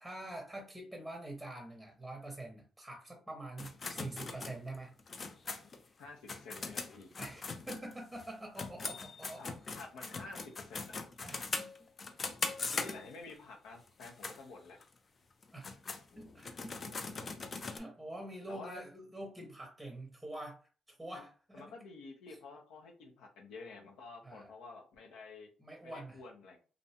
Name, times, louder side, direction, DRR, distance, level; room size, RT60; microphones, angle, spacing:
voice 1, 0.0-4.9 7.2-9.4 11.2-11.7 15.5-15.7 16.1-21.7 24.2-24.5 25.6-26.2, right 1 dB, 5° right, 1 dB, 0.7 m, -46 dB
sound 1, 3.6-8.3 8.5-13.3 13.9-14.4 14.8-14.9 15.4-17.8, left 4 dB, 40° left, 0.4 m, -41 dB
voice 2, 6.0-7.1 9.4-11.0 12.7-14.8 18.5-18.8 21.2-21.3 21.5-25.5 25.8-26.6, left 3 dB, 90° left, 1 dB, 0.6 m, -50 dB
2.5 x 2.1 x 2.8 m, 0.37 s
cardioid pair, 90°, 0 cm